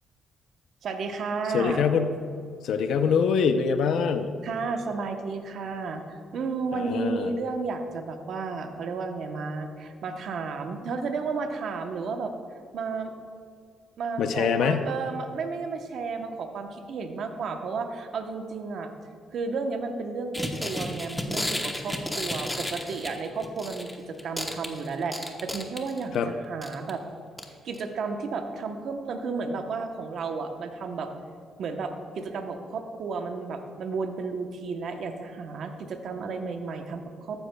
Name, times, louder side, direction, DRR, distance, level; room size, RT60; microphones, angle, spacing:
voice 1, 0.8-1.9 4.4-12.3 12.7-13.1 14.0-18.9 19.3-27.0 27.6-31.1 31.6-37.5, right 4 dB, 65° right, 5 dB, 0.9 m, -32 dB
voice 2, 1.5-2.1 2.6-4.4 6.7-7.3 14.2-14.9 26.1-26.3, left 6 dB, 75° left, 8 dB, 0.5 m, -24 dB
sound 1, 20.3-23.9 24.2-26.1 26.6-26.9 27.4-27.5 27.7-27.8, left 1 dB, 10° left, 0.9 m, -32 dB
14.0 x 9.9 x 2.3 m, 2.2 s
cardioid pair, 90°, 0 cm